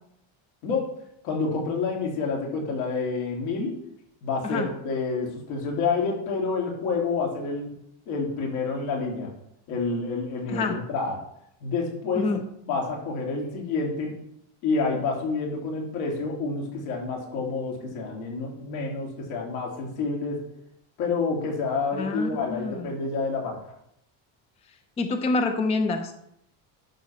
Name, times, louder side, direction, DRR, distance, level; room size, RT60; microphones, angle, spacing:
voice 1, 1.2-3.8 4.2-7.7 8.0-9.3 9.7-11.2 11.6-12.3 12.6-14.2 14.6-20.4 21.0-23.6, left 4 dB, 80° left, -1 dB, 3.4 m, -28 dB
voice 2, 10.5-10.8 12.1-12.4 21.9-22.8 25.0-26.1, left 3 dB, 15° left, 6 dB, 0.5 m, -27 dB
11.5 x 4.2 x 6.0 m, 0.75 s
cardioid pair, 170°, 48 cm